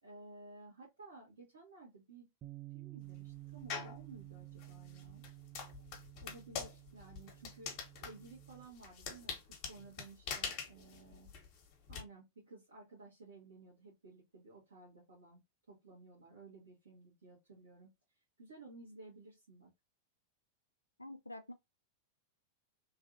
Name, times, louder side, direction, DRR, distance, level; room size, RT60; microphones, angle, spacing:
voice 1, 0.0-2.3 2.7-5.2 6.2-11.3 11.9-15.4 15.7-19.7, right 3 dB, 70° right, 1.4 m, -55 dB
Bass guitar, 2.4-8.7, right 19 dB, 30° right, 0.5 m, -52 dB
sound 1, 3.7-4.0 4.6-12.0, left 6 dB, 40° left, 1.1 m, -44 dB
voice 2, 21.0-21.5, left 1 dB, 85° left, 0.3 m, -47 dB
3.1 x 2.7 x 2.6 m
figure-of-eight pair, 90°, 0 cm